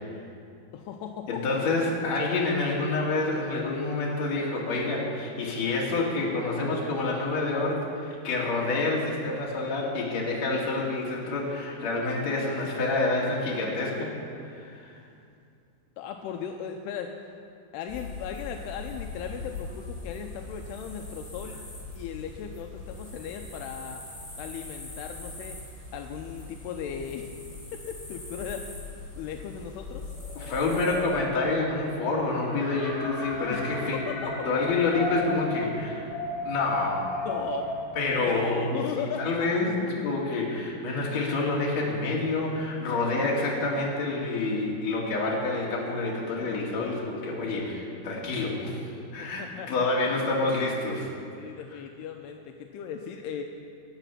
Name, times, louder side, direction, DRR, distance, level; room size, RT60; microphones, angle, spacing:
voice 1, 0.7-1.6 16.0-17.1 17.7-21.6 22.0-24.0 24.4-25.6 25.9-27.3 27.7-28.7 29.2-30.1 33.5-33.7 33.9-34.3 37.3-37.7 38.2-39.2 49.2-49.9 51.4-53.4, left 8 dB, 80° left, 4 dB, 2.6 m, -37 dB
voice 2, 1.3-14.1 14.4-15.0 30.4-36.1 36.4-37.1 37.9-48.8 49.1-51.1, left 3 dB, 45° left, -3 dB, 3.1 m, -28 dB
sound 1, 17.9-31.2, left 3 dB, 10° left, 3.5 m, -41 dB
Wind, 30.1-38.0, left 1 dB, 55° right, 4.2 m, -35 dB
sound 2, 31.6-38.5, left 1 dB, 60° left, 6.0 m, -42 dB
21.5 x 8.1 x 5.8 m, 2.4 s
omnidirectional pair, 4.8 m